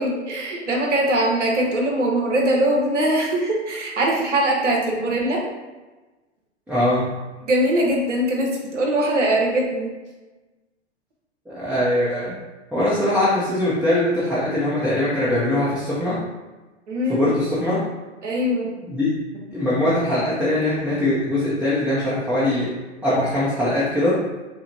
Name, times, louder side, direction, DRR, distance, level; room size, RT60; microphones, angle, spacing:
voice 1, 0.0-5.4 7.5-9.9 16.9-17.3 18.2-18.7, right 1 dB, 80° right, -1 dB, 1.1 m, -21 dB
voice 2, 6.7-7.1 11.5-12.3 12.7-16.2 17.1-17.8 18.9-19.1 19.5-22.7 23.0-24.2, left 1 dB, 5° right, -9 dB, 0.5 m, -21 dB
5.9 x 2.1 x 2.7 m, 1.2 s
hypercardioid pair, 115°, 35 cm